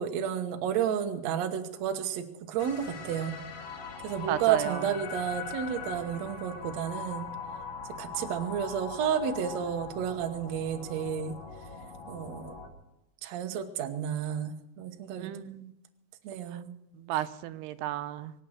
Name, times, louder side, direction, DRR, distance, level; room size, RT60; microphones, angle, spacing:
voice 1, 0.0-3.4 4.0-7.3 8.0-11.4 12.1-12.5 13.2-15.3 16.2-16.7 17.1-17.2, right 8 dB, 65° right, 6 dB, 1.9 m, -31 dB
sound 1, 2.6-12.7, left 5 dB, 85° left, 4.3 m, -41 dB
voice 2, 4.3-4.8 15.2-15.7 17.1-18.3, right 13 dB, 85° right, 12 dB, 2.8 m, -33 dB
24.0 x 8.7 x 6.4 m, 0.87 s
omnidirectional pair, 4.6 m